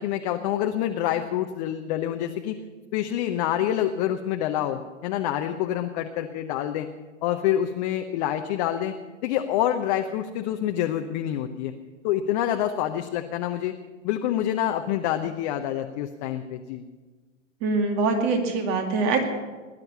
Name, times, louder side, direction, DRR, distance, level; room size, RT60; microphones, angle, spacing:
voice 1, 0.0-2.6 2.9-6.9 7.2-8.9 9.2-11.7 12.0-13.7 14.0-16.8, left 11 dB, 35° left, 5 dB, 0.8 m, -27 dB
voice 2, 17.6-19.2, right 3 dB, 35° right, 5 dB, 2.4 m, -23 dB
18.5 x 10.5 x 7.0 m, 1.3 s
figure-of-eight pair, 105°, 38 cm